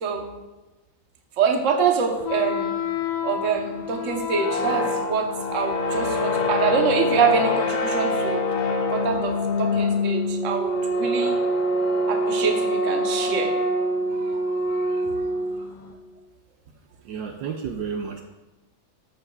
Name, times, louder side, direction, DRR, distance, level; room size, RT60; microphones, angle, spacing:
voice 1, 1.4-2.7 3.2-8.4 8.9-9.3 9.6-11.3 12.1-13.5 14.1-14.4 14.8-15.0, right 6 dB, 45° right, 2 dB, 1.1 m, -25 dB
sound 1, 2.2-15.9, left 2 dB, 65° left, 1.2 m, -25 dB
voice 2, 17.0-18.2, right 6 dB, 75° right, 3 dB, 1.2 m, -31 dB
14.0 x 7.6 x 2.4 m, 1.1 s
omnidirectional pair, 2.3 m